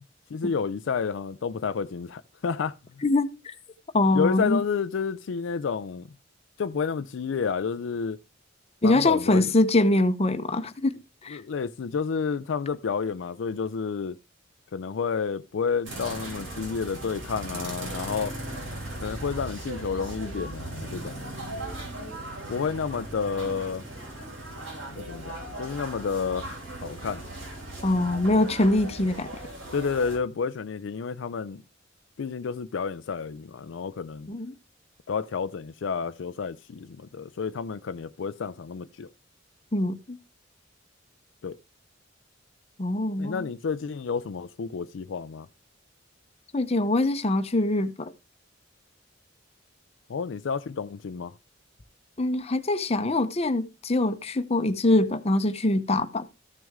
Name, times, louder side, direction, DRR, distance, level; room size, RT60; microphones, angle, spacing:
voice 1, 0.3-2.7 4.1-6.0 6.6-8.2 8.8-9.5 11.3-14.2 14.7-18.3 19.0-21.2 22.5-23.8 24.9-26.5 26.8-27.2 29.7-31.6 32.2-34.3 35.1-39.1 41.4-41.6 43.2-45.5 50.1-51.3, left 5 dB, 70° left, 0.4 m, -30 dB
voice 2, 3.9-4.6 8.8-10.9 11.2-11.4 27.8-29.3 34.3-34.5 39.7-40.2 42.8-43.5 46.5-48.1 52.2-56.3, left 2 dB, 35° left, 0.8 m, -23 dB
sound 1, 15.8-30.2, right 1 dB, 75° right, 3.7 m, -38 dB
13.5 x 6.2 x 3.6 m
head